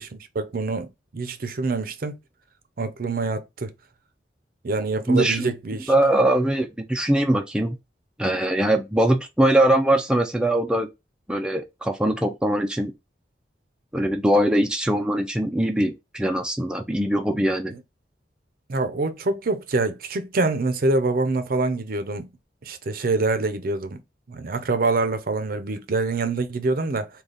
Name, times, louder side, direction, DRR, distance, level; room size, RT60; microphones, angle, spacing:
voice 1, 0.0-2.1 2.8-3.7 4.6-5.9 17.7-17.8 18.7-22.3 22.6-24.0 24.3-27.1, right 3 dB, 55° right, 0.5 m, -25 dB
voice 2, 5.1-5.5 5.9-7.8 8.2-10.9 11.3-12.9 13.9-17.7, right 1 dB, 5° right, 0.4 m, -21 dB
3.8 x 2.3 x 3.3 m
head